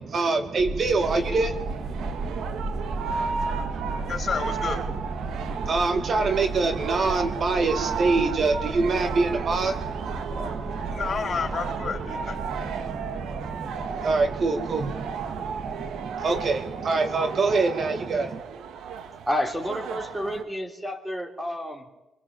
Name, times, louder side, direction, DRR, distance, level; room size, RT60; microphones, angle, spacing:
voice 1, 0.0-4.3 5.2-11.1 11.8-18.4, right 3 dB, 50° right, 7 dB, 2.2 m, -27 dB
sound 1, 0.6-16.5, right 3 dB, 25° right, 6.4 m, -35 dB
sound 2, 1.0-20.4, right 6 dB, 75° right, 2.0 m, -35 dB
voice 2, 4.1-4.8 10.3-12.5, left 6 dB, 45° left, 5 dB, 4.1 m, -31 dB
voice 3, 19.3-21.9, left 1 dB, 5° right, 2 dB, 3.6 m, -30 dB
26.0 x 18.5 x 8.8 m, 0.96 s
cardioid pair, 90°, 0 cm